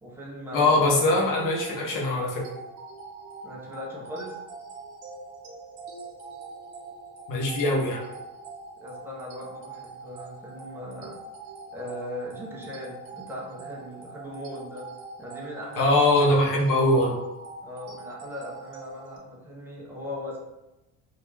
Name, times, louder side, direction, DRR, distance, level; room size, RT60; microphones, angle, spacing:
voice 1, 0.0-0.7 3.4-4.4 8.8-11.2 11.7-14.8 15.2-15.9 17.6-20.4, left 1 dB, 5° right, -4 dB, 0.3 m, -38 dB
voice 2, 0.5-2.4 7.3-8.0 15.8-17.1, left 2 dB, 50° left, -2 dB, 0.8 m, -22 dB
sound 1, 0.7-19.2, right 3 dB, 65° right, 0.8 m, -43 dB
2.4 x 2.2 x 3.1 m, 0.98 s
cardioid pair, 150°, 42 cm